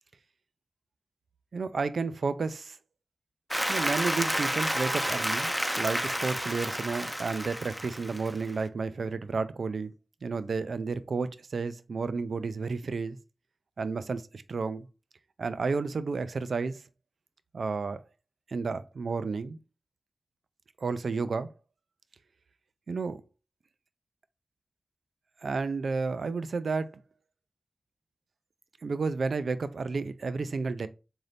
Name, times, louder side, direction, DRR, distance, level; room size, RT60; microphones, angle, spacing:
voice 1, 1.5-2.8 3.7-9.9 10.2-13.2 13.8-14.9 15.4-16.8 17.5-18.0 18.5-19.6 20.8-21.5 22.9-23.2 25.4-26.9 28.8-30.9, right 4 dB, 80° right, 0.3 m, -31 dB
Applause, 3.5-8.5, equal, 5° right, 0.4 m, -30 dB
3.8 x 2.6 x 3.3 m
wide cardioid pair, 65°, 0 cm